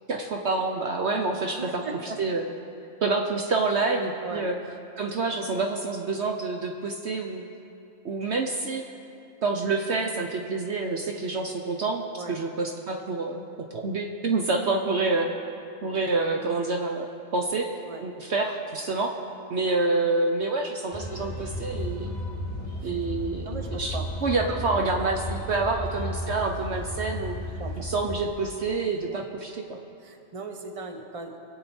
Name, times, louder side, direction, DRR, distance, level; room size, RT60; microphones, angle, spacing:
voice 1, 0.1-2.5 3.0-4.6 5.0-7.4 8.0-8.8 9.4-13.4 13.7-15.3 15.8-17.7 18.0-19.1 19.5-22.1 22.8-27.4 27.8-29.8, right 3 dB, 55° right, 3 dB, 1.1 m, -27 dB
voice 2, 1.6-2.2 4.2-4.5 12.2-12.4 17.8-18.0 23.4-24.1 27.6-27.9 29.1-29.2 30.0-31.4, right 3 dB, 25° right, 3 dB, 1.1 m, -38 dB
sound 1, 20.9-28.2, left 1 dB, 10° left, 2.4 m, -34 dB
24.5 x 8.6 x 4.4 m, 2.7 s
omnidirectional pair, 1.4 m